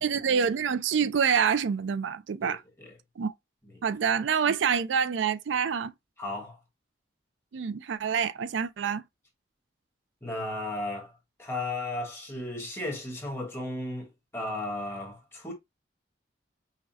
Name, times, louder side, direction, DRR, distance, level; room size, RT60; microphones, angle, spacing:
voice 1, 0.0-2.6 3.2-3.3 3.8-5.9 7.5-9.0, right 6 dB, 90° right, 0.4 m, -26 dB
voice 2, 2.4-2.9 3.7-3.8 6.2-6.6 10.2-11.1 11.4-15.5, left 2 dB, 15° left, 1.3 m, -35 dB
5.6 x 2.1 x 2.7 m
head